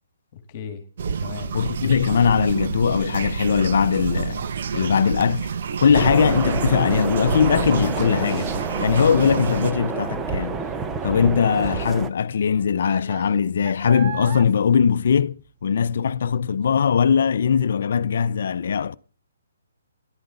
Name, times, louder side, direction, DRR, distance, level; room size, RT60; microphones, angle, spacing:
voice 1, 0.3-0.8 1.2-1.6, left 8 dB, 35° left, 2.3 m, -36 dB
sound 1, 1.0-9.7, right 6 dB, 55° right, 1.1 m, -28 dB
voice 2, 1.5-4.4 4.7-5.5 5.8-8.5 8.8-10.6 11.0-19.0, left 7 dB, 60° left, 0.7 m, -20 dB
Child speech kid speaking, 4.4-15.9 16.2-16.6 17.1-17.2, right 8 dB, 40° right, 1.5 m, -42 dB
sound 2, 5.9-12.1, right 5 dB, 15° right, 1.0 m, -29 dB
13.5 x 11.5 x 6.9 m
hypercardioid pair, 150°, 0 cm